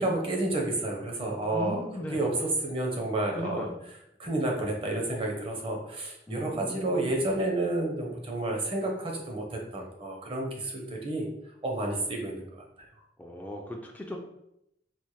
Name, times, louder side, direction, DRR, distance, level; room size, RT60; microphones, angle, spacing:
voice 1, 0.0-1.8 2.1-3.7 4.2-11.3 11.6-12.6, right 2 dB, 30° right, 0 dB, 0.7 m, -30 dB
voice 2, 1.5-2.2 3.4-3.7 6.3-7.2 13.2-14.2, equal, 10° left, 0 dB, 0.3 m, -38 dB
4.2 x 2.1 x 3.1 m, 0.80 s
head